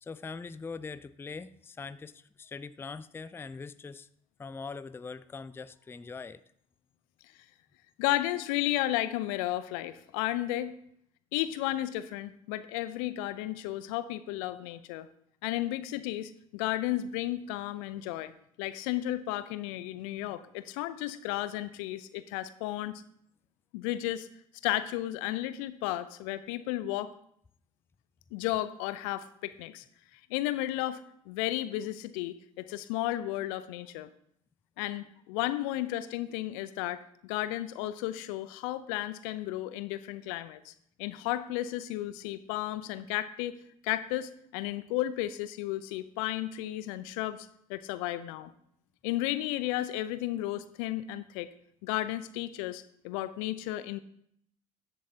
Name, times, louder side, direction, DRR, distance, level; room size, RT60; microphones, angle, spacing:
voice 1, 0.0-4.1 4.4-6.4, left 4 dB, 15° left, 15 dB, 0.4 m, -42 dB
voice 2, 8.0-10.7 11.3-15.1 15.4-18.3 18.6-23.0 23.7-24.3 24.6-27.1 28.3-29.8 30.3-31.0 31.3-34.1 34.8-40.7 41.0-43.5 43.8-48.5 49.0-51.5 51.8-54.0, left 14 dB, 70° left, 14 dB, 0.6 m, -33 dB
13.5 x 7.7 x 2.8 m, 0.69 s
figure-of-eight pair, 55°, 18 cm